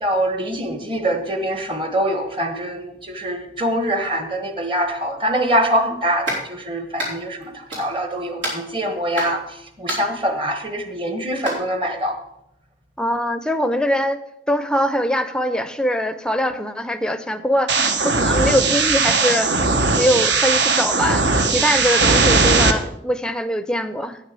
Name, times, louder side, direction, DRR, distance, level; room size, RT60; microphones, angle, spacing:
voice 1, 0.0-9.4 9.8-12.2, right 1 dB, 30° right, 7 dB, 1.1 m, -24 dB
sound 1, 6.3-6.4 7.0-7.4 7.7-8.1 8.4-9.4 9.9-10.2 11.3-11.5, equal, 90° right, 4.1 m, -27 dB
voice 2, 13.0-14.2 14.5-19.6 20.0-24.2, equal, 5° left, 11 dB, 0.5 m, -22 dB
sound 2, 17.7-22.7, right 4 dB, 70° right, 0.9 m, -18 dB
9.4 x 6.5 x 6.7 m, 0.81 s
head